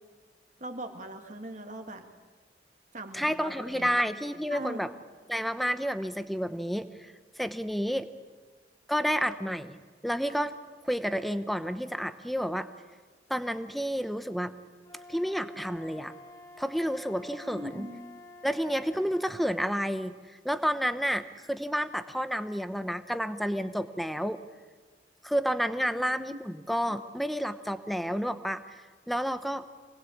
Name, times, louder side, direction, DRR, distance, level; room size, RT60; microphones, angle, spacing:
voice 1, 0.6-2.1 2.9-3.9 4.5-4.9 17.4-18.0 25.9-26.0 26.3-26.4, right 1 dB, 40° right, 5 dB, 2.1 m, -40 dB
voice 2, 3.1-4.9 5.3-8.1 8.9-10.5 10.8-12.7 13.3-14.5 15.1-16.1 16.6-17.9 18.4-24.4 25.2-29.6, equal, ahead, 11 dB, 0.9 m, -30 dB
Wind instrument woodwind instrument, 14.8-19.5, left 2 dB, 20° left, 1.7 m, -50 dB
26.0 x 19.5 x 8.6 m, 1.4 s
head